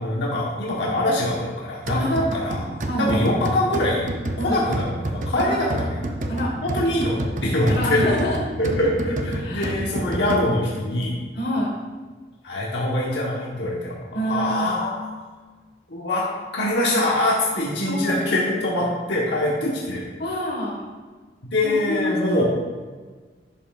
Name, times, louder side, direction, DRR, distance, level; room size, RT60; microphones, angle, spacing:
voice 1, 0.0-2.6 3.0-4.0 4.4-5.9 6.6-8.0 8.6-11.1 12.4-14.0 14.3-15.0 15.9-16.3 16.5-20.1 21.5-22.4, left 1 dB, 85° left, -4 dB, 1.2 m, -23 dB
voice 2, 1.9-2.2 2.9-3.2 4.4-4.6 5.4-5.5 6.3-6.5 7.7-8.4 9.4-9.9 10.3-10.4 10.8-11.8 14.1-14.8 17.9-18.2 20.2-20.8 21.6-22.4, equal, 60° left, -2 dB, 1.6 m, -27 dB
sound 1, 1.9-10.8, right 1 dB, 45° right, 0.6 m, -29 dB
11.0 x 5.6 x 2.5 m, 1.4 s
head